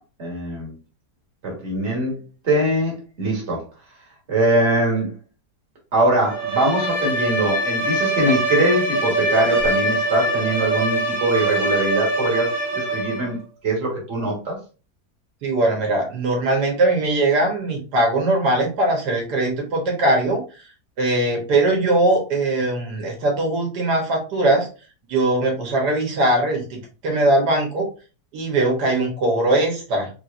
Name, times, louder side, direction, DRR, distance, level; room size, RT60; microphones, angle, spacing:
voice 1, 0.2-0.8 1.4-3.6 4.3-5.1 5.9-13.4 13.6-14.6, right 1 dB, 45° right, -2 dB, 1.6 m, -22 dB
Bowed string instrument, 6.2-13.3, right 1 dB, 15° right, 0.8 m, -23 dB
voice 2, 15.4-20.4 21.0-24.7 25.1-27.9 28.3-30.1, right 2 dB, 85° right, 0 dB, 1.5 m, -20 dB
3.4 x 3.0 x 2.5 m, 0.35 s
omnidirectional pair, 1.7 m